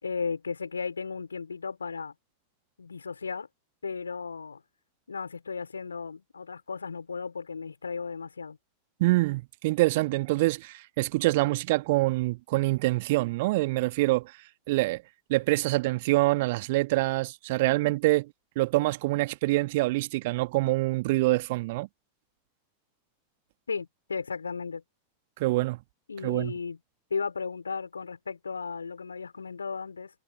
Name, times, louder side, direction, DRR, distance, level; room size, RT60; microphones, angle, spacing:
voice 1, 0.0-2.1 2.8-3.5 3.8-4.6 5.1-8.6 23.7-24.8 26.1-26.8 27.1-30.1, left 5 dB, 75° left, 4.7 m, -35 dB
voice 2, 9.0-14.2 14.7-15.0 15.3-18.3 18.5-21.9 25.4-25.8 26.2-26.5, right 20 dB, 50° right, 1.5 m, -25 dB
figure-of-eight pair, 90°, 0 cm